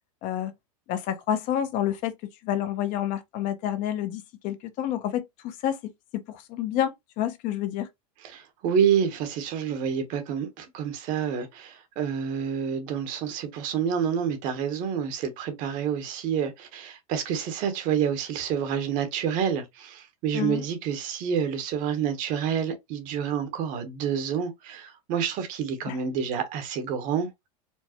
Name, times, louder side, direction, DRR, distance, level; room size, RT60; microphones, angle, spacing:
voice 1, 0.2-0.5 0.9-2.1 2.4-5.8 6.3-7.9 20.3-20.6 25.9-26.0, left 11 dB, 45° left, 0.6 m, -29 dB
voice 2, 8.2-27.5, right 8 dB, 45° right, 1.0 m, -28 dB
4.5 x 2.1 x 2.9 m
supercardioid pair, 130°, 19 cm